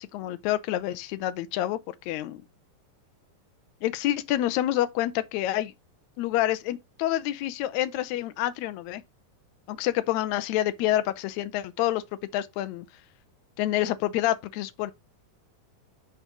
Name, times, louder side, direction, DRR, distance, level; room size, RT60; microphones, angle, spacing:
voice 1, 0.0-2.4 3.8-5.7 6.2-9.0 9.7-12.0 12.3-12.9 13.6-14.9, left 14 dB, 75° left, 1.8 m, -28 dB
8.2 x 3.3 x 6.0 m
omnidirectional pair, 3.8 m